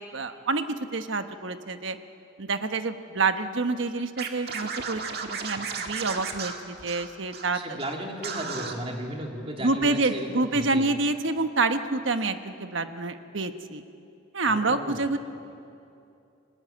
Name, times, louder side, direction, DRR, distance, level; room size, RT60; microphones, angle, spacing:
voice 1, 0.0-2.0 2.4-7.6 9.6-13.8 14.3-15.2, right 3 dB, 75° right, 8 dB, 1.2 m, -27 dB
Scratching (performance technique), 4.2-7.5 7.8-7.9 8.2-8.7, right 5 dB, 50° right, 1.9 m, -34 dB
voice 2, 7.5-10.8 14.5-15.1, right 1 dB, 30° right, 1 dB, 3.0 m, -35 dB
29.0 x 19.5 x 8.6 m, 2.6 s
head